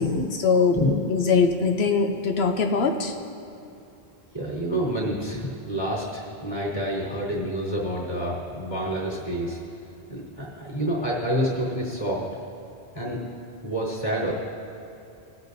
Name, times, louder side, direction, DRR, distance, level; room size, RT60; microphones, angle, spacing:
voice 1, 0.0-0.8 1.1-3.1, left 5 dB, 80° left, 4 dB, 0.9 m, -22 dB
voice 2, 4.3-9.6 10.1-12.2 12.9-13.2 13.6-14.3, equal, 40° left, -9 dB, 2.9 m, -28 dB
22.5 x 8.1 x 2.7 m, 2.7 s
omnidirectional pair, 1.0 m